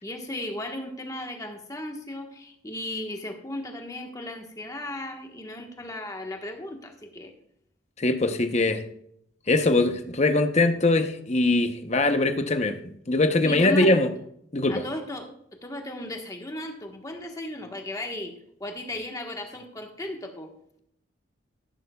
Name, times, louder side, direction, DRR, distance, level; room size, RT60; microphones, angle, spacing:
voice 1, 0.0-7.3 13.4-13.9 14.7-18.3 18.6-20.5, left 1 dB, 15° left, 1.3 m, -36 dB
voice 2, 8.0-8.8 9.5-12.8 13.1-14.1 14.5-14.8, left 2 dB, 35° left, 0.8 m, -22 dB
14.0 x 12.0 x 2.3 m
head